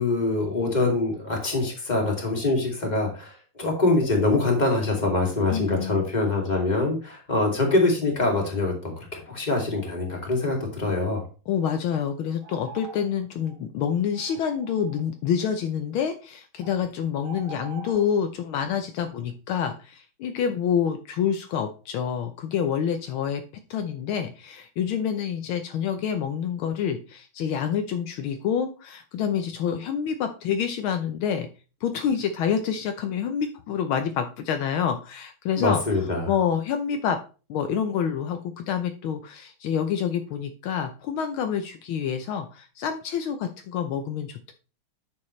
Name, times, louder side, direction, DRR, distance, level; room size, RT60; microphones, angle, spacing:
voice 1, 0.0-11.2 35.6-36.3, left 2 dB, 20° left, 0 dB, 2.5 m, -24 dB
voice 2, 5.5-6.0 11.5-23.4 23.7-31.5 31.8-35.8 36.3-37.2 37.5-44.5, left 8 dB, 75° left, 7 dB, 1.5 m, -27 dB
sound 1, 12.4-13.1 13.4-13.6 14.1-15.1 16.6-16.8 17.2-18.1, right 5 dB, 70° right, 3.0 m, -43 dB
9.6 x 6.7 x 3.2 m, 0.35 s
omnidirectional pair, 2.4 m